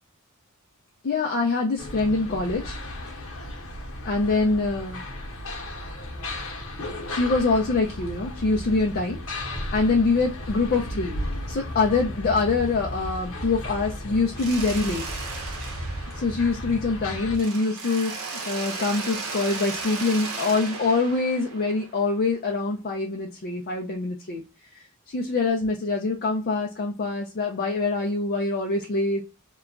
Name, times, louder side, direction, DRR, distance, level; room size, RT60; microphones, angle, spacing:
voice 1, 1.0-2.8 4.1-5.0 7.1-9.2 9.7-11.1 11.5-15.0 16.2-24.4 25.1-29.2, left 3 dB, 45° left, 0 dB, 0.4 m, -24 dB
sound 1, 1.8-17.4, left 1 dB, 70° left, 0.9 m, -34 dB
Mechanisms, 14.4-17.0 17.3-22.2, right 4 dB, 75° right, 0.9 m, -35 dB
2.9 x 2.2 x 2.3 m, 0.28 s
head